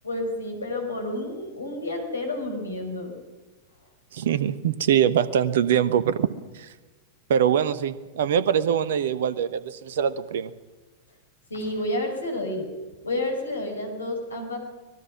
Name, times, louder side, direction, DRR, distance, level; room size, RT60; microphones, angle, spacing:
voice 1, 0.0-3.1 11.5-12.7 13.0-14.6, left 1 dB, 75° left, 3 dB, 5.5 m, -30 dB
voice 2, 4.1-6.3 7.3-10.5, right 9 dB, 60° right, 16 dB, 1.2 m, -23 dB
25.0 x 19.5 x 6.1 m, 1.3 s
figure-of-eight pair, 90°, 0 cm